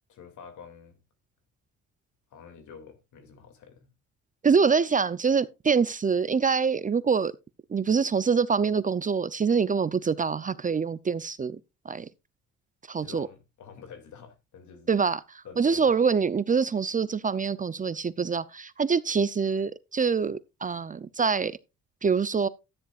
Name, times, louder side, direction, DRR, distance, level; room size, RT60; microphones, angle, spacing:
voice 1, 0.1-1.0 2.3-3.9 13.0-15.0 15.4-16.0, left 6 dB, 75° left, 2.5 m, -48 dB
voice 2, 4.4-7.3 7.7-11.5 11.9-12.1 12.9-13.3 14.9-21.6 22.0-22.5, right 5 dB, 25° right, 0.5 m, -25 dB
13.0 x 10.0 x 2.4 m
cardioid pair, 90°, 30 cm